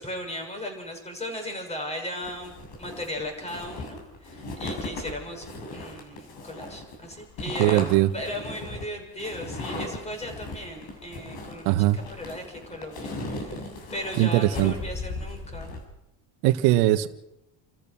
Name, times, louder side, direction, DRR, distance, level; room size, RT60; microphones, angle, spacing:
voice 1, 0.0-5.4 5.7-7.8 8.1-15.7, left 1 dB, 15° left, 6.3 m, -37 dB
sound 1, 2.2-15.8, left 2 dB, 60° left, 7.3 m, -37 dB
voice 2, 7.6-8.1 11.6-12.0 14.2-14.7 16.4-17.1, right 15 dB, 80° right, 1.6 m, -20 dB
30.0 x 14.0 x 6.2 m
cardioid pair, 130°, 50 cm